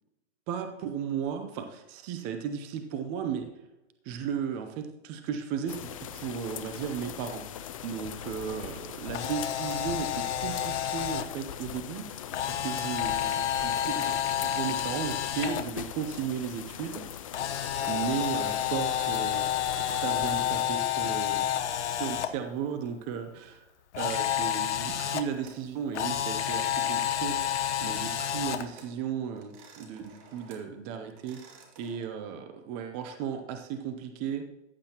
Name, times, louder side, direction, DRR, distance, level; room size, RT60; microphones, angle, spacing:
voice 1, 0.5-3.5 4.0-12.2 12.5-17.0 17.9-19.4 19.8-21.4 21.7-23.6 24.0-27.4 27.8-31.4 31.8-34.4, right 7 dB, 20° right, 7 dB, 0.6 m, -35 dB
sound 1, 5.7-20.7, left 10 dB, 30° left, 0.4 m, -41 dB
Camera, 9.0-11.2 12.3-15.6 17.3-22.3 23.9-25.2 25.9-28.6, left 10 dB, 65° left, 1.1 m, -30 dB
sound 2, 24.9-25.7 26.4-27.3 27.8-29.0 29.4-30.7 31.1-32.0, right 4 dB, 40° right, 2.3 m, -53 dB
14.5 x 9.8 x 2.9 m, 0.96 s
hypercardioid pair, 155°, 37 cm